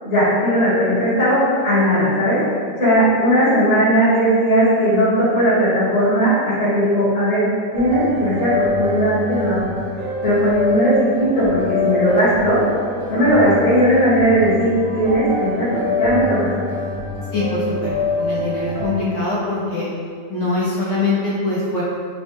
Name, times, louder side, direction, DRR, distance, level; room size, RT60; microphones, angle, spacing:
voice 1, 0.0-7.4 7.7-9.7 10.2-12.6 13.1-16.5, equal, 45° left, -12 dB, 1.4 m, -17 dB
sound 1, 7.7-18.9, left 2 dB, 60° right, 0.9 m, -25 dB
voice 2, 17.3-17.9 18.2-19.9 20.3-21.8, left 3 dB, 65° left, -7 dB, 0.7 m, -23 dB
4.4 x 2.1 x 3.0 m, 2.1 s
omnidirectional pair, 1.9 m